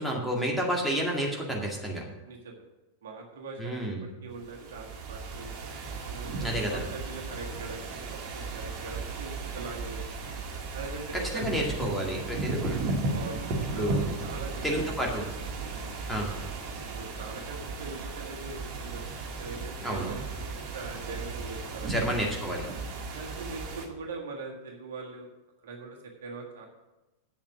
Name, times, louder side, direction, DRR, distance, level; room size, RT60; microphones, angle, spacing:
voice 1, 0.0-2.0 3.6-4.1 6.4-6.8 11.3-12.9 13.8-14.1 14.6-15.3 16.1-16.3 19.8-20.2 21.8-22.7, equal, ahead, -2 dB, 2.2 m, -30 dB
voice 2, 2.2-2.6 3.0-5.5 6.0-10.0 10.7-11.8 13.1-14.9 15.2-15.3 16.1-16.5 16.9-19.0 19.4-21.9 23.1-25.3 25.6-26.7, right 3 dB, 60° right, 0 dB, 1.6 m, -41 dB
sound 1, 4.4-23.9, right 3 dB, 40° right, 1.8 m, -35 dB
8.4 x 7.3 x 6.1 m, 1.1 s
figure-of-eight pair, 90°, 0 cm